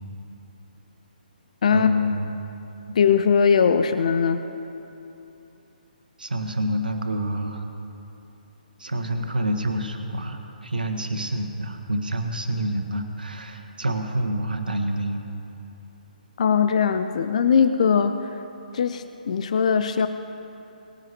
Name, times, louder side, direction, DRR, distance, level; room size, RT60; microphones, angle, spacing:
voice 1, 1.7-2.3 2.9-3.0 6.2-7.6 8.8-15.3, equal, 70° right, 4 dB, 1.4 m, -27 dB
voice 2, 3.0-4.4 16.4-18.3 18.7-20.1, left 6 dB, 50° left, 10 dB, 0.5 m, -20 dB
20.0 x 10.5 x 3.0 m, 2.9 s
figure-of-eight pair, 135°, 5 cm